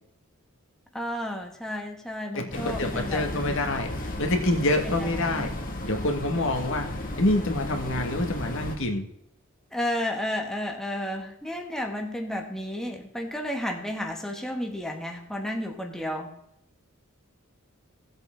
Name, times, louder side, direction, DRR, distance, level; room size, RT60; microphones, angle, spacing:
voice 1, 0.9-3.5 4.8-4.9 5.2-5.4 9.7-16.3, left 1 dB, ahead, 2 dB, 1.2 m, -32 dB
voice 2, 2.3-3.9 4.2-5.5 5.8-9.1, left 1 dB, 65° left, 3 dB, 1.9 m, -26 dB
sound 1, 2.5-8.8, left 1 dB, 40° left, 2.1 m, -34 dB
17.0 x 8.0 x 3.8 m, 0.80 s
head